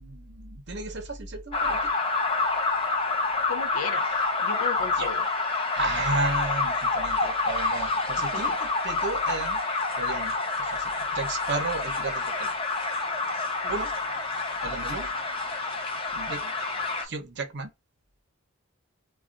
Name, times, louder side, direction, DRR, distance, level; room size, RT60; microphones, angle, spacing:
voice 1, 0.0-1.9 5.0-5.1 5.8-9.6 9.9-12.5 13.7-13.9 14.6-15.1 16.1-16.5 17.0-17.7, right 3 dB, 55° right, 0.7 m, -33 dB
sound 1, 1.5-17.0, left 3 dB, 25° left, 0.5 m, -28 dB
voice 2, 3.5-5.2 8.2-8.6 13.6-13.8, left 6 dB, 85° left, 0.5 m, -35 dB
2.3 x 2.3 x 3.7 m
head